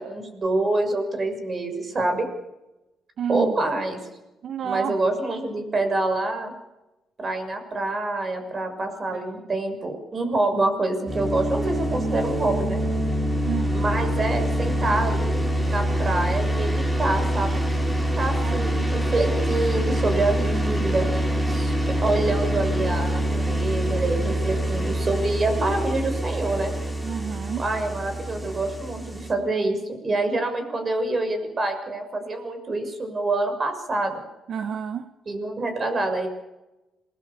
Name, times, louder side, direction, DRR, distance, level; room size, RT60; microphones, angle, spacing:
voice 1, 0.0-2.3 3.3-4.0 4.6-6.5 7.2-12.8 13.7-17.6 18.2-21.1 21.5-21.7 22.0-26.7 27.6-34.2 35.3-36.3, right 2 dB, 35° right, 6 dB, 6.5 m, -26 dB
voice 2, 3.2-3.6 4.4-4.9 9.1-9.4 13.4-13.8 18.4-18.9 27.0-27.6 34.5-35.1, right 8 dB, 60° right, 10 dB, 1.2 m, -30 dB
sound 1, 11.1-29.3, equal, 10° right, 5.9 m, -25 dB
27.5 x 20.5 x 6.9 m, 1.0 s
cardioid pair, 90°, 0 cm